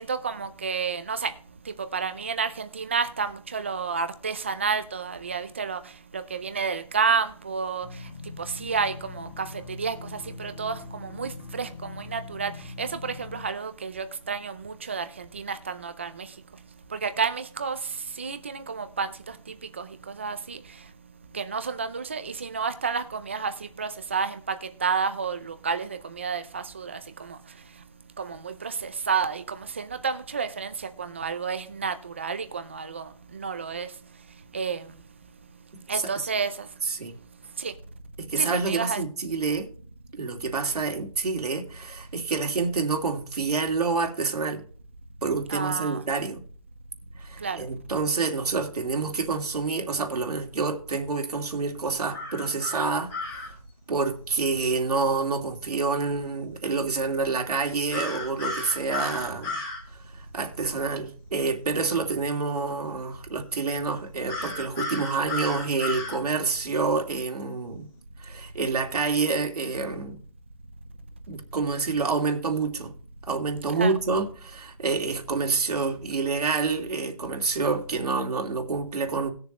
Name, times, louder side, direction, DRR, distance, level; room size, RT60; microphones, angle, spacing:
voice 1, 0.0-1.3 1.7-16.3 16.9-20.8 21.3-27.4 28.2-33.9 34.5-34.9 35.9-36.7 37.6-37.7 38.4-39.0 45.5-46.0 47.4-47.6 73.8-73.9, right 5 dB, 20° right, 0.5 m, -31 dB
sound 1, 7.8-13.5, left 3 dB, 40° left, 2.4 m, -42 dB
voice 2, 35.9-36.3 36.8-37.1 38.2-39.7 40.1-44.6 45.2-46.4 47.2-53.4 53.9-59.6 60.3-67.9 68.2-70.2 71.3-72.9 73.3-79.3, right 4 dB, 85° right, 2.5 m, -28 dB
sound 2, 52.1-53.5 57.9-59.8 64.3-66.2, left 3 dB, 10° left, 2.0 m, -33 dB
19.0 x 6.9 x 3.0 m
hypercardioid pair, 175°, 19 cm